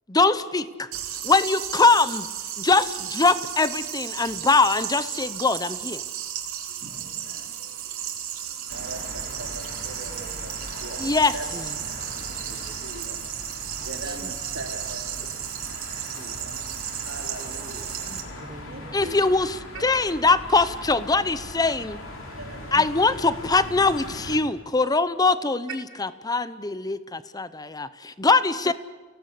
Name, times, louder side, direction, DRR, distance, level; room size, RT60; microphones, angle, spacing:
voice 1, 0.1-0.9 1.2-2.3 2.6-6.0 11.0-11.3 18.9-22.0 22.7-28.7, left 3 dB, 20° left, 14 dB, 0.7 m, -22 dB
sound 1, 0.9-18.2, right 10 dB, 85° right, 3.2 m, -34 dB
voice 2, 6.8-11.4 12.5-13.3 13.7-15.0 16.2-16.5 17.0-17.9 18.6-19.3 19.7-19.8 22.4-23.1, right 2 dB, 65° right, 0 dB, 3.8 m, -41 dB
sound 2, 8.7-24.4, left 1 dB, 70° left, 4.1 m, -40 dB
voice 3, 11.5-12.1 14.0-14.3 15.2-15.3 18.1-19.0 22.7-22.9 28.6-28.7, right 2 dB, 20° right, 14 dB, 0.7 m, -42 dB
29.5 x 17.5 x 8.3 m, 1.4 s
head